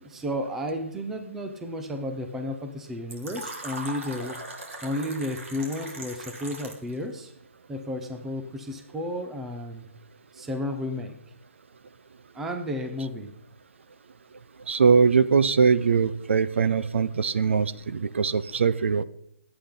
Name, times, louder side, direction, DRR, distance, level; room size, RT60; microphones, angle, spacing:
voice 1, 0.0-4.4 4.8-7.3 7.7-9.9 10.3-11.2 12.3-13.3, left 1 dB, 5° right, 6 dB, 0.5 m, -32 dB
Fill (with liquid), 3.1-6.9, right 2 dB, 85° right, 3.2 m, -39 dB
voice 2, 14.7-19.0, right 5 dB, 65° right, 15 dB, 0.7 m, -21 dB
21.0 x 8.7 x 3.8 m, 0.69 s
hypercardioid pair, 175°, 7 cm